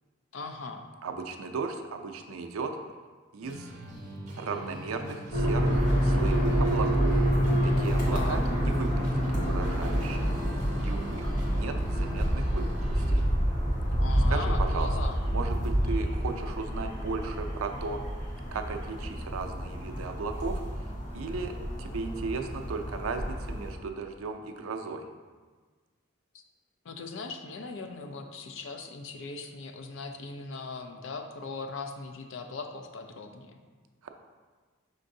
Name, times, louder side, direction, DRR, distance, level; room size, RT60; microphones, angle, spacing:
voice 1, 0.3-0.9 8.1-8.4 14.0-15.2 26.3-26.4 26.8-33.6, left 4 dB, 65° left, 5 dB, 0.4 m, -39 dB
voice 2, 1.0-2.8 3.3-3.7 4.4-7.2 7.6-10.3 10.8-13.2 14.3-14.9 15.3-18.0 18.5-20.6 21.1-21.5 21.8-25.1 34.0-34.1, right 4 dB, 85° right, 5 dB, 0.4 m, -36 dB
sound 1, 3.4-13.3, right 1 dB, 35° right, 0.7 m, -43 dB
sound 2, 5.3-23.7, equal, 40° left, 1.0 m, -28 dB
5.3 x 3.8 x 2.6 m, 1.4 s
head